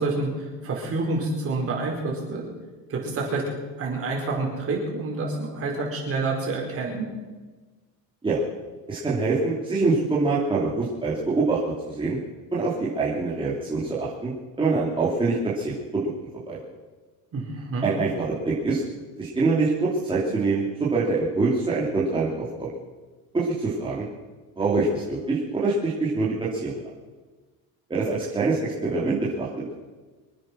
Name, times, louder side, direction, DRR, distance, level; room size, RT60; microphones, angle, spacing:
voice 1, 0.0-2.4 2.9-3.4 3.8-7.1 17.3-17.9, right 3 dB, 35° right, -1 dB, 5.1 m, -28 dB
voice 2, 8.9-12.2 12.5-16.0 16.5-16.6 17.8-18.8 19.2-22.7 23.3-24.1 24.6-26.7 27.9-29.9, right 3 dB, 15° right, -7 dB, 2.9 m, -25 dB
25.0 x 9.2 x 6.2 m, 1.3 s
cardioid pair, 150°, 40 cm